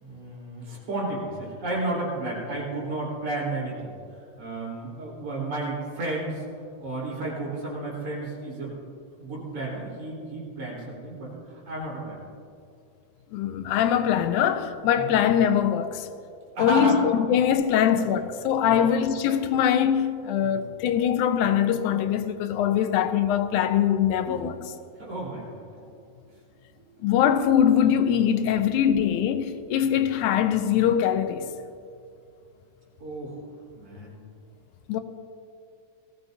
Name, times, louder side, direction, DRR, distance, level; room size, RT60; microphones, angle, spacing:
voice 1, 0.0-3.9 4.4-6.4 6.8-8.7 9.2-12.2 15.0-15.1 16.6-17.0 17.8-18.2 18.7-19.0 20.4-20.6 24.3-24.5 25.0-25.6 26.8-26.9 28.6-28.7 29.8-30.0 33.0-33.4 33.7-34.1, right 2 dB, 70° right, 5.6 m, -32 dB
voice 2, 13.3-16.1 16.6-24.5 27.0-31.5 34.9-35.0, left 9 dB, 90° left, 2.2 m, -22 dB
19.5 x 15.5 x 2.7 m
omnidirectional pair, 3.4 m